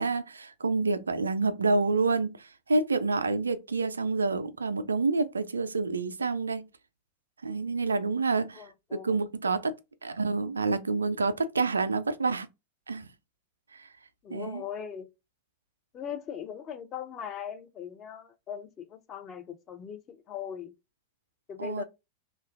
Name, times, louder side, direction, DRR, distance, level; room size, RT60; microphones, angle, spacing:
voice 1, 0.0-6.7 7.4-9.8 10.0-12.5 12.9-13.1 13.7-13.9 14.3-14.6 21.6-21.8, right 3 dB, 75° right, 0.3 m, -28 dB
voice 2, 8.5-9.2 9.4-9.5 14.2-15.1 15.9-20.7 21.5-21.8, left 8 dB, 30° left, 0.5 m, -40 dB
3.0 x 2.3 x 2.3 m
figure-of-eight pair, 90°, 0 cm